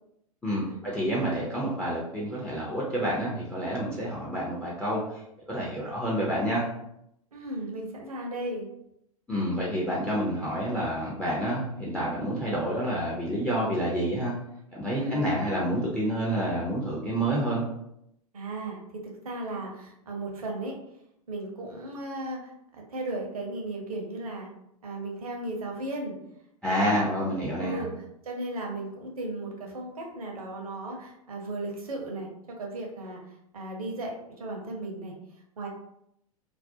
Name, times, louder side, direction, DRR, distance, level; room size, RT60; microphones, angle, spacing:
voice 1, 0.4-5.0 5.5-6.6 9.3-14.3 14.7-17.7 26.6-27.9, equal, 5° left, -5 dB, 0.4 m, -28 dB
voice 2, 7.3-8.7 14.9-15.3 18.3-20.8 21.3-24.5 24.8-26.2 26.7-27.1 27.6-27.9 28.2-33.2 33.5-35.1 35.6-35.7, right 2 dB, 70° right, 0 dB, 0.7 m, -35 dB
2.4 x 2.0 x 2.6 m, 0.78 s
figure-of-eight pair, 95°, 19 cm